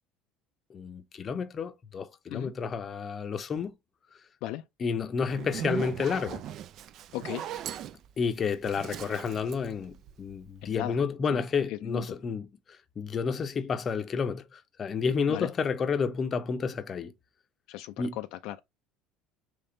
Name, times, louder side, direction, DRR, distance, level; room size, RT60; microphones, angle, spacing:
voice 1, 0.7-3.7 4.8-6.4 8.2-12.5 13.0-17.1 18.0-18.2, left 5 dB, 30° left, 0.6 m, -30 dB
Zipper (clothing), 5.2-10.5, right 10 dB, 50° right, 0.3 m, -39 dB
voice 2, 7.1-7.5 10.6-11.0 11.3-11.4 11.7-12.2 15.3-15.5 17.7-18.6, left 15 dB, 70° left, 0.3 m, -37 dB
3.4 x 3.3 x 3.8 m
cardioid pair, 135°, 0 cm